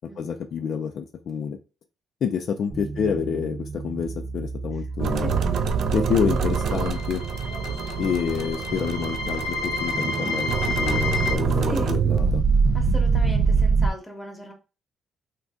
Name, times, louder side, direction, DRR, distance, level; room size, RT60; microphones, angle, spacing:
voice 1, 0.2-1.6 2.2-5.4 5.9-7.2 8.0-12.4, left 7 dB, 65° left, 5 dB, 0.3 m, -28 dB
sound 1, 2.7-8.0, right 4 dB, 30° right, 0.7 m, -35 dB
voice 2, 5.0-5.7 11.7-11.9 12.7-14.5, equal, 10° left, 3 dB, 0.9 m, -37 dB
sound 2, 5.0-13.9, right 5 dB, 70° right, 0.3 m, -24 dB
sound 3, 6.5-11.4, left 4 dB, 85° left, 0.7 m, -31 dB
2.6 x 2.3 x 3.5 m, 0.32 s
cardioid pair, 90°, 0 cm